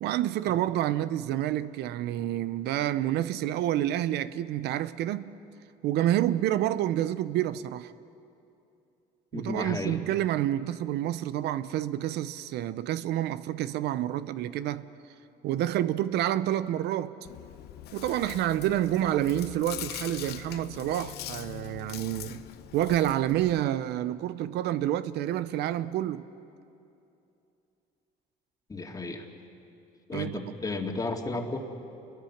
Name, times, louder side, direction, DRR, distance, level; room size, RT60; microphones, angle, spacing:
voice 1, 0.0-5.3 5.8-7.9 9.3-14.8 15.4-17.1 17.9-22.4 22.7-26.3 30.1-30.5, right 12 dB, 80° right, 0.7 m, -28 dB
voice 2, 9.3-10.0 28.7-29.3 30.1-31.6, left 3 dB, 20° left, 2.2 m, -33 dB
Chewing mastication, 17.2-23.6, left 13 dB, 75° left, 0.8 m, -42 dB
29.0 x 21.5 x 5.9 m
cardioid pair, 110°, 17 cm